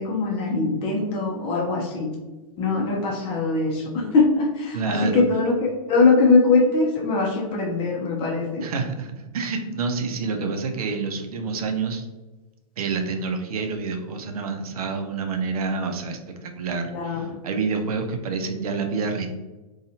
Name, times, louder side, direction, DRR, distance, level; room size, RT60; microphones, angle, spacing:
voice 1, 0.0-2.1 2.6-8.6 16.9-17.2, left 3 dB, 30° left, 0 dB, 0.6 m, -21 dB
voice 2, 4.7-5.2 8.6-12.0 12.8-19.3, right 4 dB, 75° right, 5 dB, 0.5 m, -28 dB
2.6 x 2.3 x 2.7 m, 1.1 s
hypercardioid pair, 125°, 19 cm